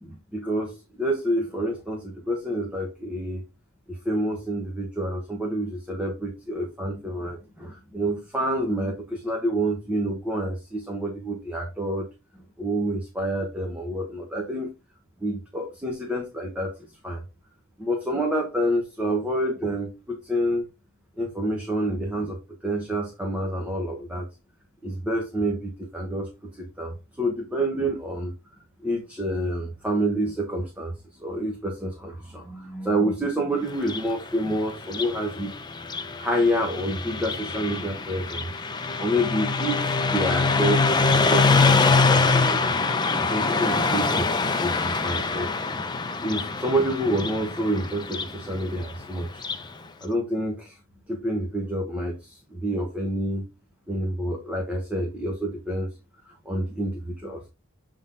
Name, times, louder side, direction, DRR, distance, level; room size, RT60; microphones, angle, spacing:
voice 1, 0.0-3.4 3.9-12.1 12.6-14.7 15.2-16.8 17.0-17.2 17.8-20.7 21.2-24.3 24.8-28.3 28.8-35.5 36.2-42.8 43.2-45.6 46.2-49.4 50.0-50.8 51.1-53.5 53.9-55.9 56.4-57.5, right 1 dB, 5° right, 1 dB, 1.0 m, -28 dB
Car passing by, 33.7-49.7, left 4 dB, 20° left, 0.5 m, -24 dB
7.1 x 3.8 x 3.8 m, 0.27 s
head